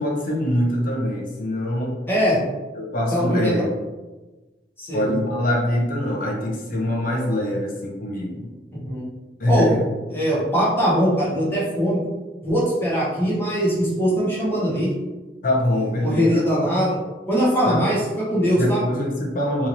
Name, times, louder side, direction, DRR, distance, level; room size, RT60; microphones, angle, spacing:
voice 1, 0.0-2.0 2.7-3.7 4.9-8.5 9.4-9.8 15.4-16.4 17.6-17.8 18.6-19.7, left 1 dB, 50° left, -1 dB, 0.7 m, -23 dB
voice 2, 2.1-2.4 3.1-3.7 4.8-5.1 8.7-9.0 9.5-9.7 10.1-12.0 12.4-14.9 16.0-17.0 17.3-18.8, equal, 15° left, -8 dB, 1.0 m, -21 dB
3.0 x 2.7 x 2.6 m, 1.2 s
head